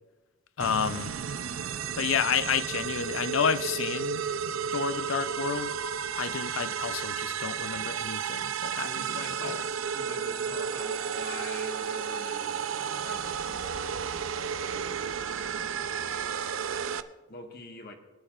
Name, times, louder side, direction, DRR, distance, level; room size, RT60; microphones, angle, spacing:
voice 1, 0.6-1.1 2.0-4.3 4.7-5.7 6.2-9.6, left 7 dB, 80° left, 0.5 m, -30 dB
sound 1, 0.6-17.0, right 7 dB, 80° right, 0.5 m, -33 dB
voice 2, 8.8-16.0 17.3-18.0, left 2 dB, 55° left, 1.4 m, -45 dB
20.0 x 10.5 x 2.5 m
head